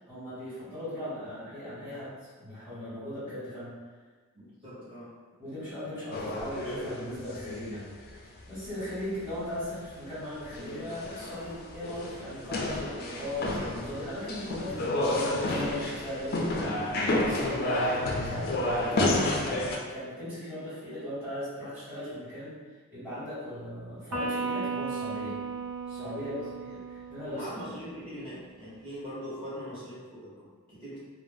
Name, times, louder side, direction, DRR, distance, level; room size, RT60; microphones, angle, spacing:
voice 1, 0.1-3.8 4.6-4.7 5.4-7.9 8.5-16.7 17.1-22.6 22.9-25.4 25.9-27.7, left 1 dB, 5° right, -19 dB, 1.3 m, -38 dB
voice 2, 4.3-5.1 26.2-26.4 27.3-31.0, equal, 25° right, -11 dB, 1.0 m, -42 dB
sound 1, 6.1-8.6 9.0-9.1 9.2-9.6 9.9-10.0 10.4-19.8, left 1 dB, 40° left, 0.3 m, -31 dB
Electric guitar, 24.1-27.6, right 4 dB, 90° right, 0.8 m, -35 dB
2.5 x 2.0 x 3.4 m, 1.4 s
head